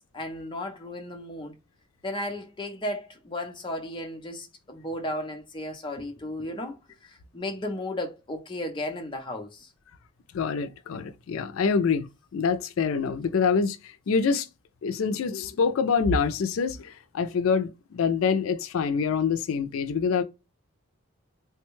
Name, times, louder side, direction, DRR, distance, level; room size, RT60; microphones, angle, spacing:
voice 1, 0.1-1.5 2.0-9.7, left 1 dB, 20° left, 0.6 m, -34 dB
voice 2, 10.3-12.1 12.3-13.8 14.1-14.5 14.8-20.2, left 5 dB, 80° left, 0.4 m, -25 dB
3.4 x 2.2 x 3.0 m
head